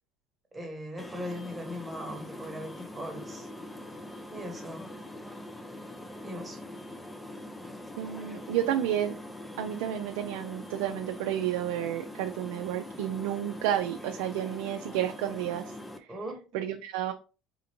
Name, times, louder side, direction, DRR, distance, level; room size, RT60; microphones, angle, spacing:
voice 1, 0.5-3.5 4.3-4.9 6.2-6.6 16.1-16.4, equal, 15° right, 2 dB, 1.2 m, -39 dB
sound 1, 1.0-16.0, left 1 dB, 10° left, 0.5 m, -43 dB
voice 2, 8.0-9.1 9.6-15.7 16.5-17.1, right 11 dB, 85° right, 5 dB, 0.3 m, -31 dB
4.2 x 2.5 x 2.9 m, 0.34 s
supercardioid pair, 95°, 0 cm